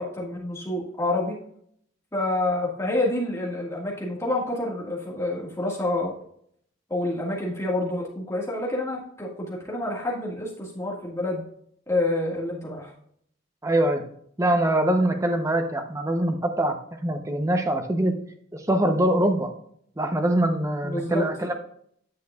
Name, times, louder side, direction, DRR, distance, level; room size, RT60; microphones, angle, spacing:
voice 1, 0.0-1.4 2.1-6.1 6.9-11.4 11.9-12.9 20.8-21.2, left 1 dB, 15° left, -3 dB, 1.6 m, -28 dB
voice 2, 13.6-14.1 14.4-18.2 18.5-19.5 20.0-21.6, right 1 dB, 15° right, 5 dB, 0.7 m, -23 dB
9.5 x 6.3 x 2.3 m, 0.67 s
head